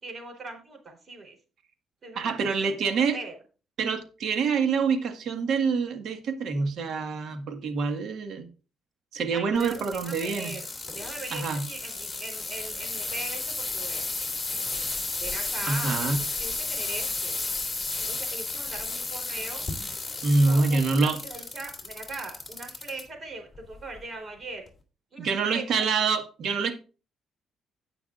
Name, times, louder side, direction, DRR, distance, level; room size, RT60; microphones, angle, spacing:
voice 1, 0.0-1.4 2.0-2.3 2.6-3.3 9.3-10.7 10.9-14.1 15.2-16.1 16.4-17.4 18.1-19.6 20.5-24.7 25.1-25.8, right 3 dB, 40° right, 4 dB, 4.0 m, -40 dB
voice 2, 2.2-3.2 3.8-8.5 9.1-10.5 11.3-11.6 15.7-16.2 20.2-21.2 25.2-26.7, right 4 dB, 70° right, 6 dB, 1.8 m, -26 dB
sound 1, 9.6-23.0 23.6-24.0 24.7-24.8, left 3 dB, 25° left, 2.7 m, -33 dB
17.5 x 6.0 x 2.6 m, 0.35 s
cardioid pair, 90°, 0 cm